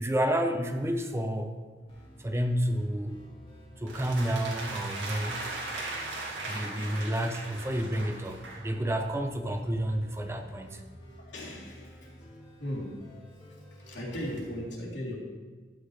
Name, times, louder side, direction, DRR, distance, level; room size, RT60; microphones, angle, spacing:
voice 1, 0.0-1.5 2.2-3.1 3.8-5.5 6.5-10.8, equal, 15° right, 6 dB, 0.6 m, -30 dB
sound 1, 1.9-14.6, equal, 30° left, 2.1 m, -51 dB
sound 2, 3.9-8.7, right 2 dB, 80° right, 2.1 m, -38 dB
voice 2, 11.2-12.0 12.6-13.0 13.9-15.2, equal, 90° left, -6 dB, 3.3 m, -37 dB
11.5 x 8.9 x 3.2 m, 1.3 s
head